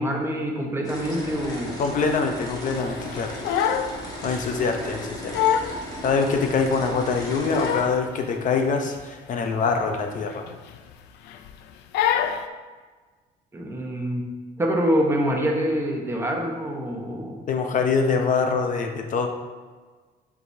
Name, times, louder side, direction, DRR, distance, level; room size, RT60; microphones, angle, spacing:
voice 1, 0.0-1.8 13.5-14.2 14.6-17.4, equal, 15° right, 0 dB, 1.1 m, -25 dB
sound 1, 0.8-7.8, equal, 20° left, 1.6 m, -36 dB
voice 2, 1.8-3.3 3.9-5.3 6.0-10.4 17.5-19.3, left 4 dB, 50° left, 4 dB, 0.8 m, -24 dB
Crying sobbing, 3.1-4.0 4.3-4.5 5.0-5.1 5.3-5.8 6.3-6.4 7.2-8.0 8.3-8.6 8.9-9.0 9.4-9.6 10.3-10.9 11.3-11.5 11.9-12.4, left 9 dB, 80° left, 0.4 m, -25 dB
7.8 x 4.9 x 2.8 m, 1.4 s
cardioid pair, 110°, 17 cm